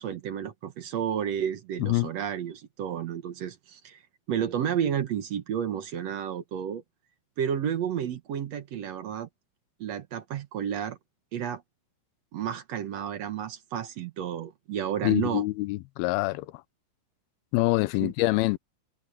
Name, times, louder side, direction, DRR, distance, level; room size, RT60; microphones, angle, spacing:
voice 1, 0.0-4.0 4.3-6.8 7.4-9.3 9.8-11.0 11.3-11.6 12.3-15.4 18.0-18.1, right 9 dB, 60° right, 1.8 m, -31 dB
voice 2, 1.8-2.1 15.0-16.6 17.5-18.6, left 20 dB, 90° left, 2.5 m, -25 dB
omnidirectional pair, 4.3 m